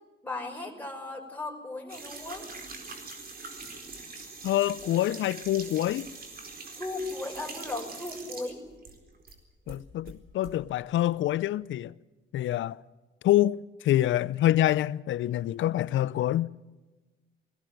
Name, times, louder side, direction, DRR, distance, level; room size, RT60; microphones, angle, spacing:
voice 1, 0.2-2.5 6.8-8.6, left 2 dB, 10° left, 5.4 m, -36 dB
sound 1, 1.9-9.4 9.7-10.5, right 3 dB, 50° right, 4.3 m, -43 dB
voice 2, 4.4-6.1 9.7-11.9 12.3-12.8 13.2-16.5, left 13 dB, 75° left, 0.7 m, -26 dB
21.0 x 16.5 x 9.2 m
cardioid pair, 90°, 20 cm